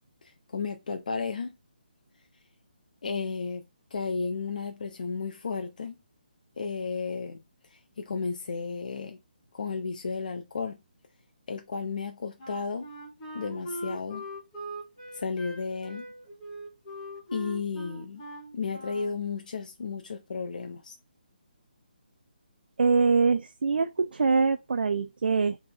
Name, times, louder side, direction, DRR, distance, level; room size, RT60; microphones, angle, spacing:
voice 1, 0.2-1.6 3.0-3.6 3.9-5.9 6.6-7.4 7.7-9.2 9.5-10.8 11.5-12.9 13.3-14.3 15.1-16.1 17.3-18.2 18.5-21.0, left 5 dB, 50° left, 0.5 m, -33 dB
Wind instrument woodwind instrument, 12.4-19.2, right 1 dB, 20° left, 1.5 m, -41 dB
voice 2, 22.8-25.6, right 4 dB, 65° right, 0.4 m, -24 dB
3.4 x 3.2 x 4.3 m
hypercardioid pair, 175°, 5 cm